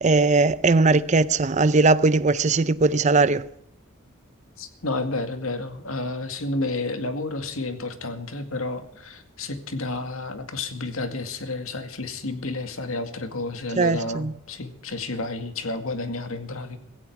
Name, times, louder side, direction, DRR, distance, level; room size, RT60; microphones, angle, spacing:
voice 1, 0.0-3.5 13.8-14.3, right 3 dB, 35° right, 0.6 m, -19 dB
voice 2, 4.6-16.8, left 2 dB, 85° left, 2.1 m, -31 dB
16.5 x 16.0 x 4.7 m
head